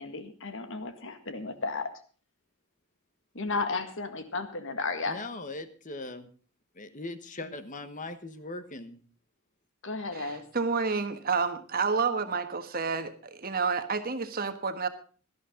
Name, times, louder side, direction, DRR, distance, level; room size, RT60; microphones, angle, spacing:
voice 1, 0.0-1.9 3.3-5.2 7.4-7.5 9.8-10.5, left 3 dB, 60° left, 9 dB, 1.8 m, -33 dB
voice 2, 5.1-6.3 6.7-9.0, left 2 dB, 35° left, 11 dB, 1.2 m, -40 dB
voice 3, 10.1-14.9, right 5 dB, 45° right, 9 dB, 1.4 m, -29 dB
17.5 x 12.5 x 3.8 m, 0.39 s
head